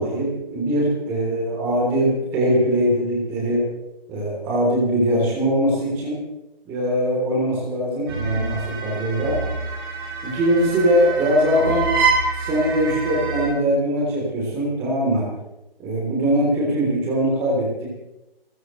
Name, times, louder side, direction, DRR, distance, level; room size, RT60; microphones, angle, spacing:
voice 1, 0.0-3.7 4.1-6.2 6.6-9.4 10.2-11.9 12.3-15.3 15.8-18.0, equal, 10° right, -3 dB, 3.3 m, -21 dB
sound 1, 8.1-13.5, right 4 dB, 25° right, 7.9 m, -26 dB
28.5 x 14.5 x 3.2 m, 0.94 s
figure-of-eight pair, 165°, 30 cm